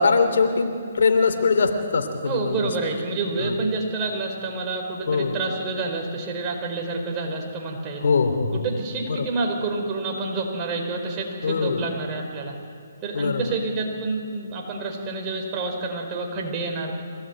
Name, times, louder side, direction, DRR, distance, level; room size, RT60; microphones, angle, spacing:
voice 1, 0.0-2.6 3.4-3.5 5.1-5.4 8.0-8.5 9.2-9.3 11.4-11.8 13.1-13.5, left 4 dB, 65° left, 7 dB, 3.1 m, -22 dB
voice 2, 2.2-8.0 8.5-12.5 13.0-17.0, right 3 dB, 25° right, 1 dB, 5.0 m, -28 dB
25.0 x 18.0 x 9.2 m, 2.3 s
hypercardioid pair, 145°, 0 cm